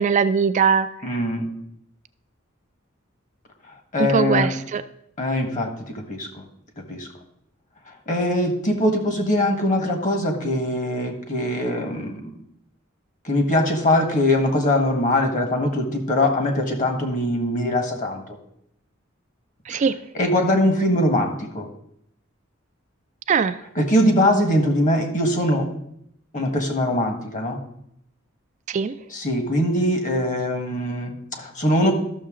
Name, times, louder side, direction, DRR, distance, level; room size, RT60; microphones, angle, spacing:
voice 1, 0.0-0.9 4.0-4.8 19.7-20.0 23.3-23.6 28.7-28.9, right 6 dB, 35° right, 11 dB, 0.3 m, -20 dB
voice 2, 1.0-1.5 3.9-4.5 5.2-6.3 6.8-7.1 8.1-12.3 13.2-18.2 19.7-19.8 20.1-21.7 23.7-25.7 26.3-27.6 29.1-31.9, left 1 dB, 40° left, 4 dB, 1.5 m, -22 dB
12.5 x 6.5 x 3.7 m, 0.74 s
head